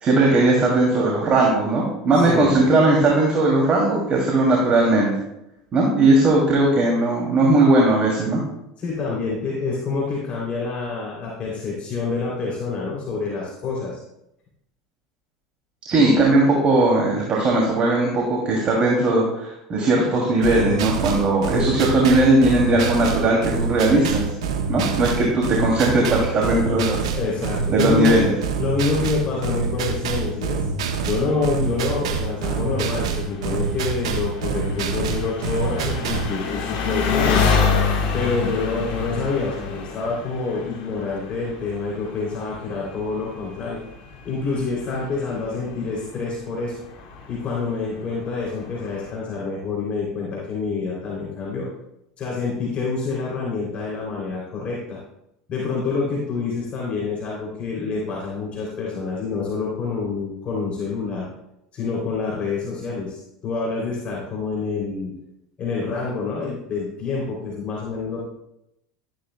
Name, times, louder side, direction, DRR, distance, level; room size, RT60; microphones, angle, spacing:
voice 1, 0.0-5.1 5.7-8.4 15.9-24.2 24.7-27.0 27.7-28.3, right 2 dB, 35° right, -2 dB, 2.6 m, -18 dB
voice 2, 2.1-2.6 8.8-14.0 27.1-28.2 28.6-30.7 31.0-37.4 38.1-43.8 44.2-46.8 47.3-51.7 52.2-55.0 55.5-61.3 61.7-65.1 65.6-68.2, left 4 dB, 40° left, -4 dB, 3.0 m, -27 dB
sound 1, 20.4-36.3, right 5 dB, 75° right, 1.1 m, -26 dB
Engine, 31.0-49.1, left 5 dB, 55° left, 2.4 m, -29 dB
13.0 x 10.5 x 2.2 m, 0.84 s
hypercardioid pair, 80°, 3 cm